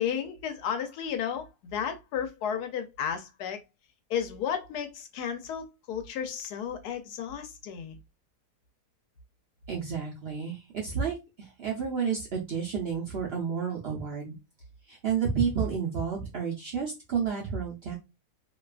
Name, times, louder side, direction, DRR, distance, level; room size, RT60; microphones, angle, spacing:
voice 1, 0.0-3.6 4.1-8.0, left 8 dB, 80° left, 1.1 m, -33 dB
voice 2, 9.7-14.4 14.9-18.0, right 6 dB, 65° right, 0.6 m, -31 dB
2.7 x 2.3 x 2.3 m
omnidirectional pair, 1.7 m